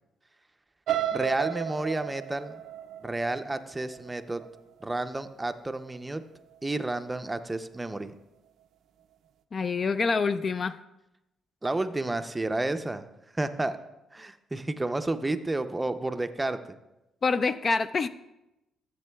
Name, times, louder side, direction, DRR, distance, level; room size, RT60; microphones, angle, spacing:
sound 1, 0.9-4.8 5.3-5.6 5.9-6.0, right 11 dB, 75° right, 0.4 m, -34 dB
voice 1, 1.1-2.6 3.0-4.4 4.8-6.2 6.6-8.1 11.6-13.8 14.1-16.6, right 2 dB, 15° right, 9 dB, 0.5 m, -31 dB
voice 2, 9.5-10.8 17.2-18.1, left 4 dB, 40° left, 12 dB, 0.3 m, -26 dB
14.0 x 7.6 x 2.3 m, 0.94 s
cardioid pair, 90°, 0 cm